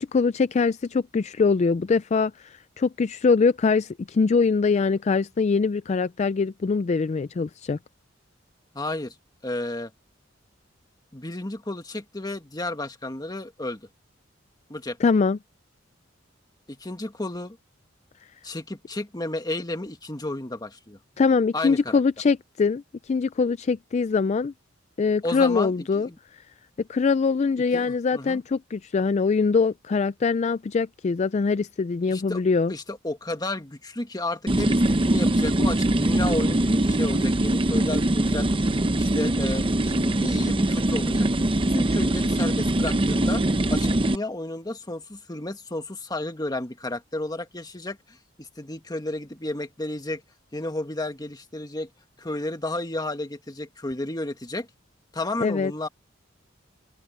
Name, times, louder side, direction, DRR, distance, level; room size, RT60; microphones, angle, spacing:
voice 1, 0.0-7.8 15.0-15.4 21.2-24.5 25.0-26.1 26.9-32.7 55.4-55.7, left 4 dB, 35° left, 0.3 m, -23 dB
voice 2, 8.7-9.1 9.4-9.9 11.1-13.9 14.7-15.0 16.7-17.6 18.4-21.0 21.5-22.0 25.2-26.2 27.7-28.4 32.0-32.4 32.7-38.6 38.9-41.3 41.6-43.4 43.7-50.2 50.5-51.9 52.2-54.7 55.1-55.9, left 2 dB, 20° left, 1.6 m, -32 dB
sound 1, 34.5-44.2, right 1 dB, 25° right, 0.8 m, -22 dB
open air
head